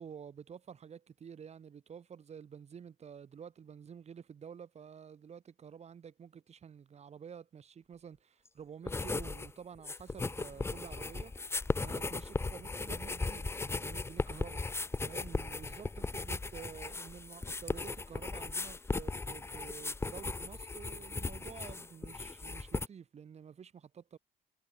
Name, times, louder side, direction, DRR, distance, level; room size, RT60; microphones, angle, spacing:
voice 1, 0.0-11.3 11.8-14.6 15.0-24.2, right 7 dB, 40° right, 2.9 m, -50 dB
sound 1, 8.9-9.5 9.8-22.9, left 3 dB, 15° left, 0.8 m, -37 dB
cardioid pair, 110°, 17 cm